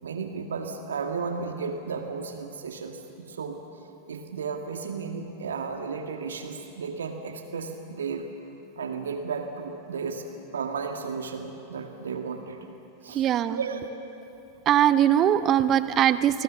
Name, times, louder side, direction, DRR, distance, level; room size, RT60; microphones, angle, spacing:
voice 1, 0.0-3.6 4.1-8.3 8.8-10.2 10.5-12.6 13.0-13.9, right 5 dB, 65° right, 4 dB, 1.8 m, -34 dB
voice 2, 13.1-13.6 14.7-16.4, right 10 dB, 30° right, 14 dB, 0.9 m, -21 dB
29.0 x 20.0 x 7.1 m, 2.8 s
figure-of-eight pair, 90°, 0 cm